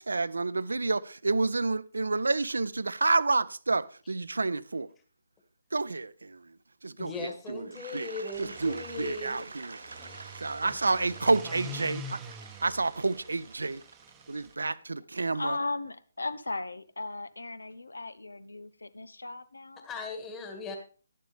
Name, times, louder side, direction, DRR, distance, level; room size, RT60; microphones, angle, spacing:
voice 1, 0.0-4.9 5.7-6.6 6.8-13.8 14.3-15.6, right 3 dB, 70° right, 0.5 m, -30 dB
voice 2, 7.0-10.2 10.6-11.3 11.9-12.1 19.8-20.8, left 3 dB, 15° left, 2.0 m, -40 dB
sound 1, 8.3-14.5, equal, 15° right, 0.9 m, -46 dB
voice 3, 15.3-19.9, left 2 dB, 75° left, 0.9 m, -37 dB
11.0 x 11.0 x 3.5 m
figure-of-eight pair, 140°, 0 cm